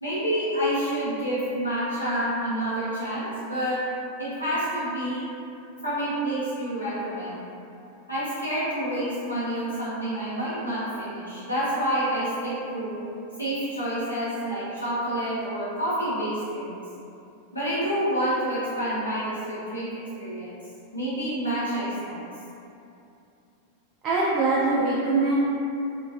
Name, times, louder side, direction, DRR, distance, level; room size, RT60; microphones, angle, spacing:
voice 1, 0.0-3.8 4.2-5.2 5.8-7.4 8.1-12.9 13.4-16.7 17.5-20.5 20.9-22.2, right 1 dB, 85° left, -12 dB, 0.8 m, -28 dB
voice 2, 24.0-25.4, right 3 dB, 35° right, -7 dB, 0.3 m, -22 dB
2.3 x 2.2 x 2.5 m, 2.7 s
figure-of-eight pair, 90°, 0 cm